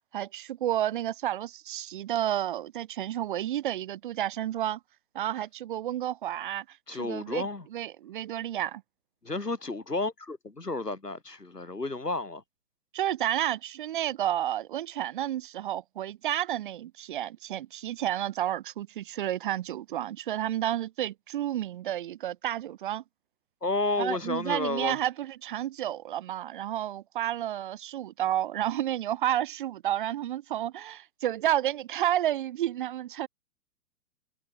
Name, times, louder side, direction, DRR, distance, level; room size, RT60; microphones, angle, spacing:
voice 1, 0.1-4.8 5.1-8.8 12.9-23.0 24.0-33.3, right 12 dB, 35° right, 0.7 m, -31 dB
voice 2, 6.9-7.7 9.2-12.4 23.6-25.0, left 3 dB, 90° left, 2.1 m, -31 dB
figure-of-eight pair, 115°, 47 cm